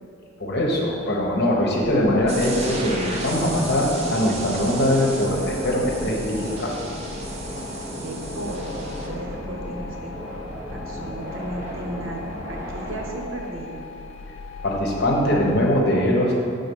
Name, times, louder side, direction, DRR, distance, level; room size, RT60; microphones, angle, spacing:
voice 1, 0.4-6.7 14.6-16.4, left 1 dB, 55° left, -2 dB, 1.0 m, -22 dB
sound 1, 1.8-15.7, left 4 dB, 90° left, 0.6 m, -39 dB
sound 2, 2.3-9.1, right 2 dB, 35° right, 0.7 m, -35 dB
sound 3, 2.5-13.1, equal, 10° right, 1.0 m, -35 dB
voice 2, 8.0-10.2 10.7-13.8, right 1 dB, 90° right, 0 dB, 0.9 m, -35 dB
5.5 x 3.9 x 5.4 m, 2.5 s
head